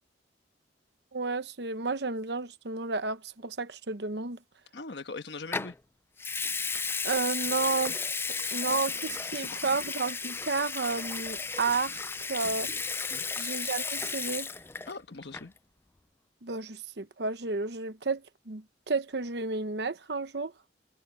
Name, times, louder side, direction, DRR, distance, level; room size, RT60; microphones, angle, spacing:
voice 1, 1.1-4.4 7.0-8.0 8.5-12.7 13.4-14.5 16.4-20.5, right 3 dB, 65° right, 1.0 m, -32 dB
voice 2, 4.7-5.7 8.4-9.6 13.1-13.3 14.9-15.5, left 3 dB, 70° left, 1.3 m, -42 dB
Water tap faucet / Sink (filling or washing) / Liquid, 5.5-5.7 6.2-15.0 15.2-15.6, left 5 dB, 15° left, 0.3 m, -34 dB
head